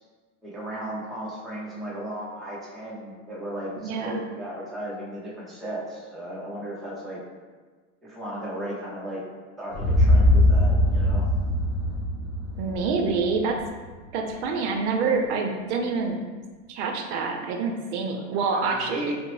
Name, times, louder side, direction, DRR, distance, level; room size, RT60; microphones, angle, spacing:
voice 1, 0.4-7.2 8.0-9.2 9.6-11.3 18.5-19.1, right 1 dB, ahead, -8 dB, 0.4 m, -35 dB
voice 2, 3.8-4.3 12.6-13.6 14.1-16.2 16.7-19.0, right 4 dB, 60° right, 3 dB, 0.5 m, -26 dB
sound 1, 9.7-13.8, left 1 dB, 25° left, 1.3 m, -21 dB
3.7 x 2.0 x 3.0 m, 1.4 s
supercardioid pair, 135°, 38 cm